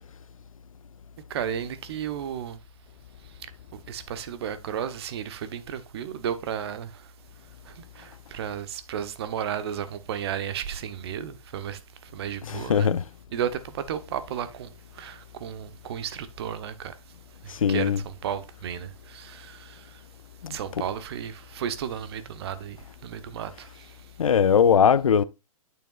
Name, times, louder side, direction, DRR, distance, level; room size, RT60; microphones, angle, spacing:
voice 1, 1.3-2.6 3.7-7.0 7.7-11.8 12.1-12.9 13.3-16.9 17.4-19.8 20.5-23.9, right 9 dB, 45° right, 1.0 m, -33 dB
voice 2, 12.5-13.0 17.6-18.0 20.4-20.6 24.2-25.2, left 7 dB, 70° left, 0.5 m, -20 dB
8.8 x 6.9 x 2.4 m
figure-of-eight pair, 125°, 18 cm